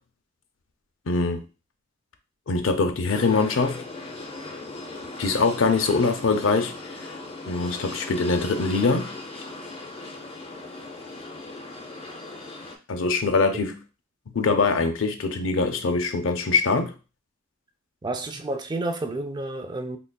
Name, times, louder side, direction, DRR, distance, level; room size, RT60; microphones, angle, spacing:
voice 1, 1.1-1.4 2.5-3.8 5.2-7.1 7.5-9.2 12.9-13.8 14.3-17.0, left 4 dB, 80° left, 0.6 m, -23 dB
sound 1, 3.1-12.8, left 2 dB, 30° left, 0.6 m, -38 dB
voice 2, 18.0-20.0, right 2 dB, 20° right, 0.4 m, -30 dB
3.8 x 3.3 x 2.2 m
head